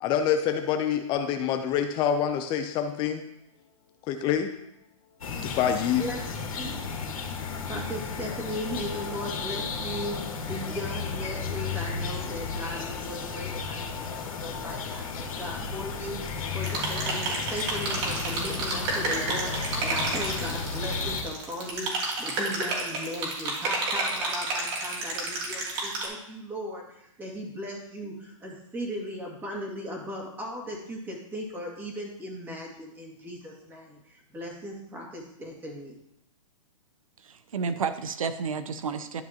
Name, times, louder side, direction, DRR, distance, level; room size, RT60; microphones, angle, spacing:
voice 1, 0.0-3.2 4.1-4.5 5.4-6.0, left 8 dB, 25° left, 6 dB, 0.6 m, -26 dB
sound 1, 5.2-21.2, left 5 dB, 85° left, 2.0 m, -33 dB
voice 2, 6.0-6.8 7.7-16.2 16.5-36.0, equal, 10° right, -2 dB, 2.2 m, -37 dB
sound 2, 16.6-26.0, right 3 dB, 45° right, 2.9 m, -31 dB
voice 3, 37.2-39.2, right 5 dB, 85° right, 11 dB, 0.8 m, -31 dB
12.0 x 5.8 x 3.0 m, 0.80 s
hypercardioid pair, 140°, 17 cm